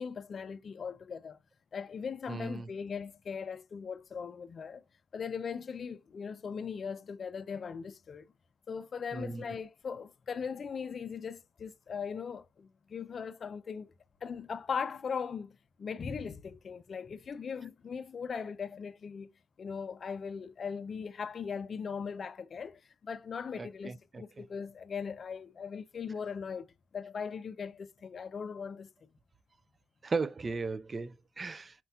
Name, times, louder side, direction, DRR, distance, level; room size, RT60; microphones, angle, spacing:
voice 1, 0.0-1.4 1.7-4.8 5.1-8.3 8.7-13.9 14.2-19.3 19.6-26.7 26.9-28.9, left 6 dB, 45° left, 0.4 m, -39 dB
voice 2, 2.3-2.7 9.1-9.4 23.6-24.2 30.0-31.7, right 4 dB, 30° right, 0.4 m, -36 dB
4.3 x 4.1 x 2.2 m
cardioid pair, 90°, 0 cm